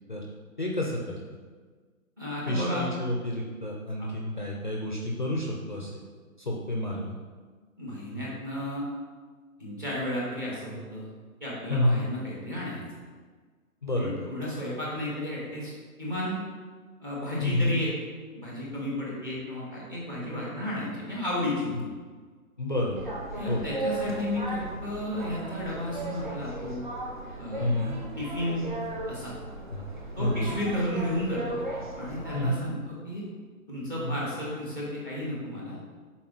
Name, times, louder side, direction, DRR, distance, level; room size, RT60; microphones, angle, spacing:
voice 1, 0.6-1.2 2.5-6.0 6.4-7.2 11.7-12.1 13.8-14.1 17.4-17.8 21.7-21.8 22.6-23.2 23.5-23.7 27.6-28.0 29.7-29.8 30.2-30.6 32.3-32.7 34.0-34.2, left 1 dB, 35° left, -2 dB, 0.5 m, -29 dB
voice 2, 2.2-2.8 4.0-4.1 7.8-8.8 9.6-11.1 11.4-12.8 14.0-15.7 16.0-16.4 17.0-17.9 18.3-21.9 23.3-26.8 27.4-27.7 28.2-28.7 29.1-29.3 30.2-31.6 31.9-33.3 33.7-35.8, left 1 dB, 15° right, -5 dB, 1.0 m, -33 dB
sound 1, 22.9-32.5, right 2 dB, 35° right, 0.5 m, -36 dB
6.0 x 4.2 x 3.8 m, 1.5 s
hypercardioid pair, 175°, 43 cm